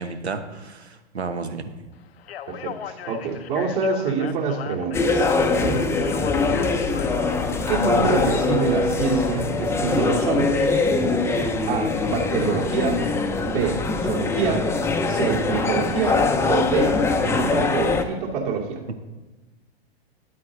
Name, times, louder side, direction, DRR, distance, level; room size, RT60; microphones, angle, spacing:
voice 1, 0.0-1.7 6.2-6.5 11.5-11.6, right 4 dB, 90° right, 8 dB, 1.1 m, -32 dB
Speech, 2.2-7.5, left 10 dB, 70° left, 0.7 m, -38 dB
voice 2, 2.5-5.9 7.7-10.7 11.7-13.0 13.4-14.7 15.1-18.8, right 5 dB, 55° right, -2 dB, 2.6 m, -26 dB
sound 1, 4.9-18.0, left 3 dB, 10° left, 0.5 m, -22 dB
10.5 x 8.6 x 3.9 m, 1.2 s
hypercardioid pair, 110°, 32 cm